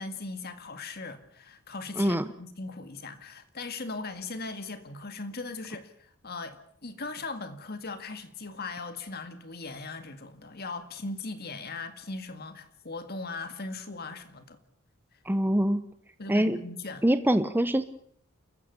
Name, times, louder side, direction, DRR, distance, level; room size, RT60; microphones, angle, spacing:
voice 1, 0.0-14.6 16.2-17.1, left 3 dB, 45° left, 2.0 m, -39 dB
voice 2, 15.3-15.8 16.3-16.6 17.0-17.8, right 1 dB, 10° right, 0.8 m, -24 dB
29.5 x 14.5 x 6.9 m
head